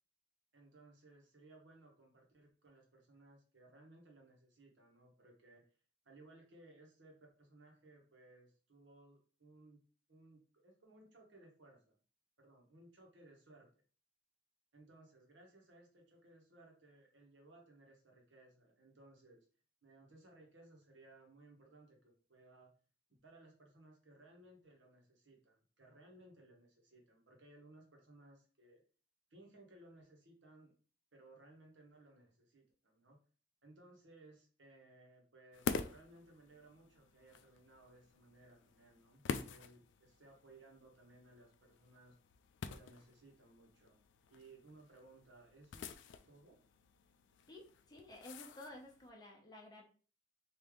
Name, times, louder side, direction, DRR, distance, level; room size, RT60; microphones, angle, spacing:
voice 1, 0.5-5.6 6.0-9.8 10.1-12.0 12.4-13.7 14.7-19.5 19.8-22.7 23.2-28.8 29.3-30.7 31.1-33.2 33.6-42.2 42.6-44.0 44.3-46.6, right 2 dB, 75° right, 1 dB, 1.1 m, -62 dB
sound 1, 35.5-49.1, left 5 dB, 70° left, 0.3 m, -47 dB
voice 2, 47.5-49.8, left 1 dB, 20° left, -1 dB, 0.8 m, -53 dB
3.2 x 2.7 x 3.6 m, 0.39 s
head